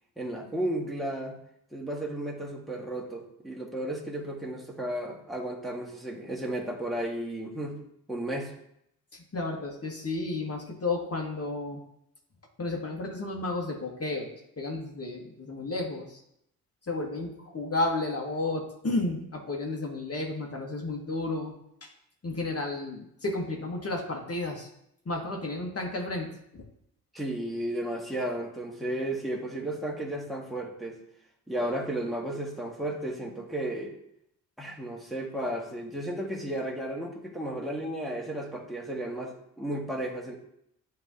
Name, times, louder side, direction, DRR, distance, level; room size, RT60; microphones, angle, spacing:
voice 1, 0.2-1.4 1.7-7.8 8.1-8.5 27.1-31.0 31.5-33.9 34.6-40.3, right 1 dB, ahead, -3 dB, 1.7 m, -33 dB
voice 2, 9.1-11.8 12.6-16.2 16.9-21.5 21.8-21.9 22.2-24.7 25.1-26.3 26.5-26.6, left 2 dB, 35° left, 0 dB, 1.8 m, -32 dB
9.6 x 3.4 x 2.8 m, 0.75 s
supercardioid pair, 50°, 39 cm